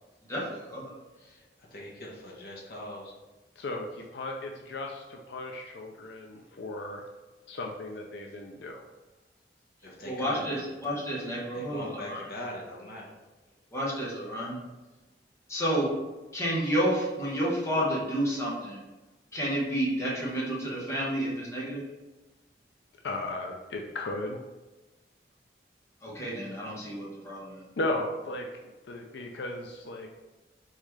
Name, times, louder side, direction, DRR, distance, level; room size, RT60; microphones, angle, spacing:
voice 1, 0.3-0.9 10.0-12.2 13.7-14.6 15.5-15.9 16.3-18.8 19.3-21.8 26.0-27.6, equal, 15° left, -6 dB, 1.1 m, -30 dB
voice 2, 1.2-3.1 9.8-10.7 11.5-13.1, left 1 dB, 55° left, -3 dB, 1.1 m, -42 dB
voice 3, 3.6-7.0 7.5-8.8 23.0-24.4 27.8-28.5 28.9-30.1, left 2 dB, 80° left, 1 dB, 0.5 m, -35 dB
4.1 x 3.7 x 3.2 m, 1.1 s
head